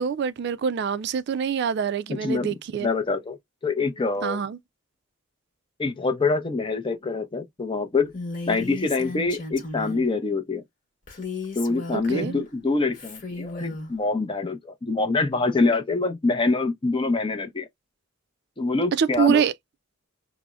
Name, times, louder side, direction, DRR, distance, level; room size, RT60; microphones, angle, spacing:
voice 1, 0.0-2.9 4.2-4.6 11.9-12.3 19.0-19.5, right 7 dB, 55° right, 0.3 m, -25 dB
voice 2, 2.1-3.4 3.6-4.4 5.8-8.1 8.5-10.6 11.5-17.7 18.6-19.4, left 3 dB, 25° left, 0.5 m, -25 dB
Female speech woman speaking, 8.1-10.1 11.1-12.5 12.9-13.9, left 3 dB, 40° left, 1.0 m, -35 dB
4.8 x 2.0 x 2.3 m
head